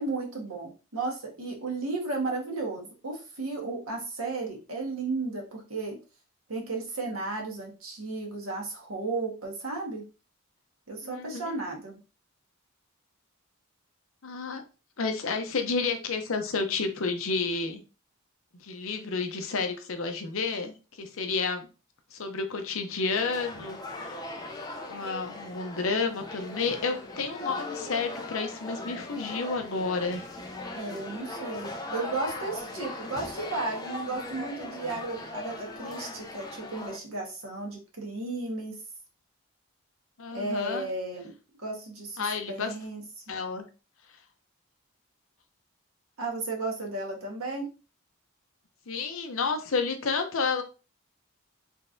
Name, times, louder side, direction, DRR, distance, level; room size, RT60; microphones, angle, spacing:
voice 1, 0.0-6.0 6.5-10.0 10.9-12.0 30.7-38.8 40.3-41.3 41.6-43.2 46.2-47.7, right 3 dB, 80° right, 0 dB, 1.4 m, -34 dB
voice 2, 11.0-11.6 14.2-14.6 15.0-17.8 18.6-21.7 22.1-24.2 24.9-30.3 40.2-40.9 42.2-42.7 43.3-43.6 48.9-50.6, left 4 dB, 70° left, 6 dB, 0.6 m, -31 dB
sound 1, 23.1-37.0, left 2 dB, 20° left, 0.5 m, -39 dB
3.8 x 3.3 x 2.6 m, 0.32 s
head